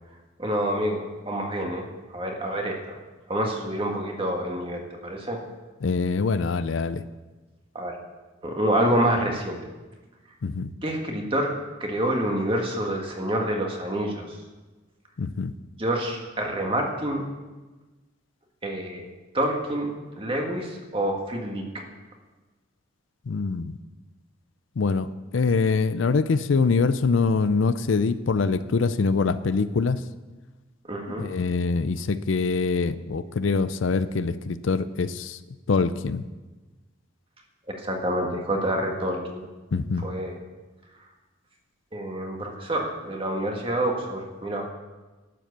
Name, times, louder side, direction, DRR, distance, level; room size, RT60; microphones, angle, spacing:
voice 1, 0.4-1.8 2.1-3.0 3.3-5.4 7.7-7.9 8.4-9.6 10.8-11.5 11.8-14.4 15.8-17.2 18.6-19.1 19.3-21.6 30.9-31.3 37.8-39.4 40.0-40.4 41.9-44.7, right 1 dB, 25° right, 1 dB, 1.6 m, -27 dB
voice 2, 5.8-7.0 10.4-10.7 15.2-15.5 23.3-23.8 24.8-25.1 25.3-30.0 31.2-35.4 35.7-36.2 39.7-40.1, left 4 dB, 75° left, 13 dB, 0.5 m, -24 dB
12.0 x 7.6 x 6.8 m, 1.2 s
head